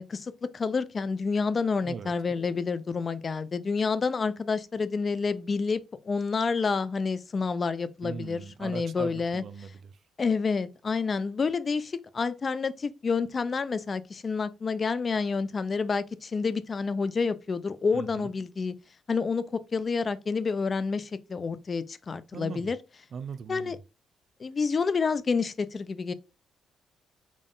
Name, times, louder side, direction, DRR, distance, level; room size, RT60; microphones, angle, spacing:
voice 1, 0.0-9.4 10.2-18.7 19.1-22.8 23.5-23.8 24.4-26.1, left 4 dB, 40° left, 0.3 m, -29 dB
voice 2, 1.8-2.1 8.0-10.0 17.9-18.3 22.3-22.7 23.1-23.8, right 6 dB, 55° right, 0.4 m, -40 dB
3.6 x 2.4 x 3.7 m
cardioid pair, 90°, 0 cm